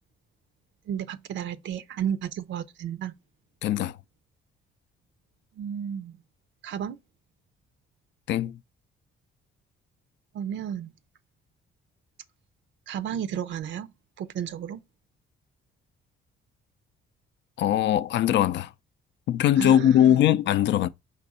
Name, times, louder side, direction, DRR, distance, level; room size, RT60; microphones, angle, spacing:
voice 1, 0.9-3.1 5.6-6.2 6.6-7.0 10.3-10.9 12.9-13.9 14.2-14.8 19.6-20.2, right 9 dB, 70° right, 0.5 m, -32 dB
voice 2, 3.6-4.0 8.3-8.6 17.6-18.7 19.3-20.9, left 11 dB, 65° left, 0.4 m, -21 dB
5.3 x 2.5 x 3.9 m
cardioid pair, 90°, 20 cm